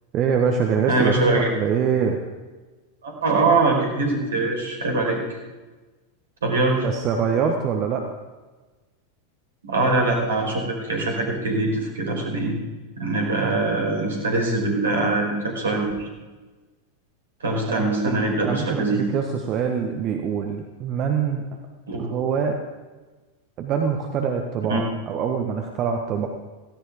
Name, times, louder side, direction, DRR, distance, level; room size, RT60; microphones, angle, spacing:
voice 1, 0.1-2.2 6.8-8.0 17.7-21.4 22.0-22.6 23.6-26.3, right 6 dB, 35° right, 3 dB, 1.4 m, -24 dB
voice 2, 0.9-1.5 3.0-5.2 6.4-6.8 9.6-12.5 13.0-16.1 17.4-19.0 21.9-22.0 24.7-24.8, right 2 dB, 65° right, 1 dB, 4.8 m, -23 dB
17.5 x 15.5 x 3.8 m, 1.2 s
figure-of-eight pair, 90°, 0 cm